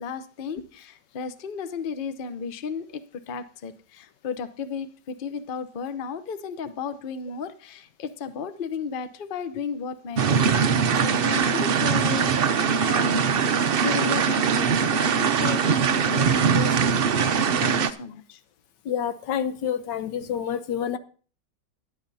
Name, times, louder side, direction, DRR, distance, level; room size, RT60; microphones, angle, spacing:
voice 1, 0.0-12.3 12.8-13.5 13.7-18.4, left 6 dB, 45° left, 11 dB, 0.7 m, -34 dB
sound 1, 10.2-17.9, right 6 dB, 75° right, 0.5 m, -22 dB
voice 2, 18.9-21.0, left 9 dB, 85° left, 12 dB, 1.4 m, -28 dB
17.0 x 11.0 x 2.7 m, 0.40 s
omnidirectional pair, 1.9 m